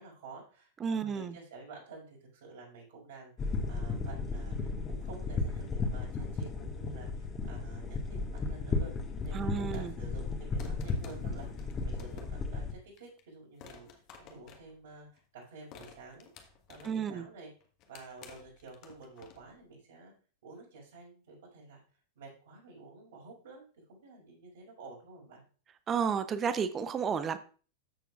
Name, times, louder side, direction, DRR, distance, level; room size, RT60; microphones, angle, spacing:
voice 1, 0.0-8.9 9.2-13.9 14.3-17.5 17.9-20.1 20.4-21.8 22.2-25.4, right 3 dB, 60° right, -2 dB, 5.2 m, -51 dB
voice 2, 0.8-1.4 9.3-9.9 16.8-17.3 25.9-27.4, right 6 dB, 25° right, 13 dB, 0.7 m, -32 dB
sound 1, 3.4-12.7, left 3 dB, 25° left, 1.6 m, -35 dB
sound 2, 9.6-10.1 10.6-12.5 13.0-13.2 13.6-15.2 15.7-17.1 17.6-19.6, left 6 dB, 40° left, 1.3 m, -53 dB
13.0 x 6.9 x 2.4 m, 0.39 s
figure-of-eight pair, 90°, 0 cm